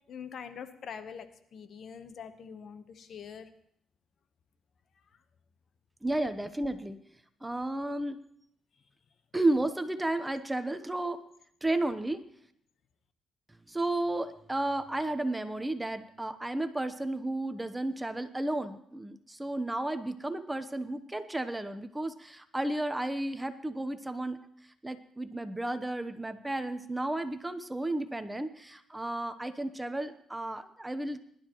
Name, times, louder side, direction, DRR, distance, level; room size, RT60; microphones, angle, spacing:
voice 1, 0.1-1.3 1.5-3.5, left 7 dB, 60° left, 10 dB, 1.1 m, -44 dB
voice 2, 6.0-7.0 7.4-8.2 9.3-11.2 11.6-12.2 13.7-24.4 24.8-31.2, right 1 dB, 10° right, 10 dB, 0.9 m, -33 dB
21.0 x 12.0 x 3.1 m, 0.69 s
cardioid pair, 90°, 0 cm